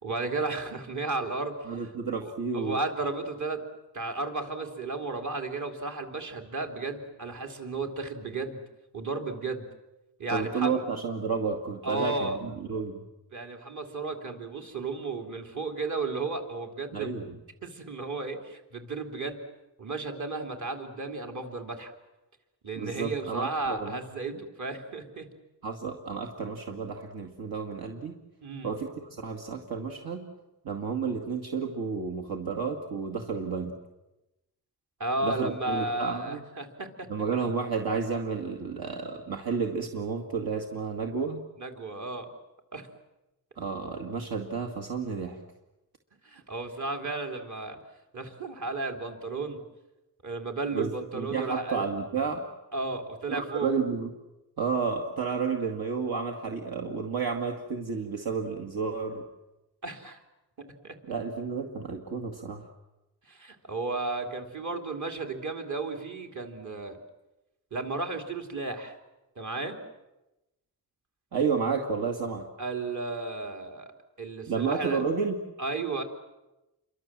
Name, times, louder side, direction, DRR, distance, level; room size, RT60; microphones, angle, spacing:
voice 1, 0.0-1.6 2.5-3.6 3.9-8.6 8.9-9.7 10.2-10.8 11.8-12.4 13.3-17.1 17.6-19.4 19.8-21.9 22.6-25.3 28.4-28.7 35.0-37.1 41.6-42.3 42.7-42.9 46.2-47.8 48.1-49.6 50.2-51.8 52.7-53.7 59.8-60.2 60.6-60.9 63.3-67.0 67.7-69.0 69.4-69.8 72.6-73.9 74.2-75.0 75.6-76.0, right 3 dB, 45° right, 4 dB, 3.3 m, -33 dB
voice 2, 1.7-2.8 10.3-13.1 16.9-17.4 22.8-24.0 24.3-24.4 25.6-28.2 28.6-30.3 30.6-33.7 35.2-36.4 37.1-41.4 43.6-45.4 50.7-52.5 53.3-54.1 54.6-59.3 61.0-62.7 71.3-72.5 74.5-75.4, right 5 dB, 65° right, 1 dB, 2.3 m, -31 dB
29.0 x 24.0 x 7.6 m, 0.99 s
wide cardioid pair, 135°, 39 cm